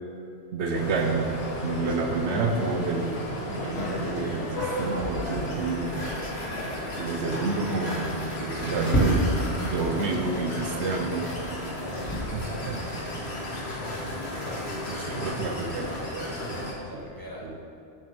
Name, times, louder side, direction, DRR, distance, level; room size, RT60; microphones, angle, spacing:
voice 1, 0.5-1.4 1.6-3.2 3.5-6.0 6.8-11.3 12.3-13.0 14.9-16.6 16.9-17.0 17.4-17.6, right 3 dB, 70° right, 3 dB, 1.0 m, -29 dB
sound 1, 0.7-16.7, equal, 60° left, 1.7 m, -31 dB
voice 2, 6.0-6.5 8.5-8.7 11.9-12.9 13.8-14.1 16.9-17.4, left 1 dB, 20° left, -5 dB, 1.3 m, -40 dB
6.9 x 6.1 x 5.1 m, 2.7 s
omnidirectional pair, 1.2 m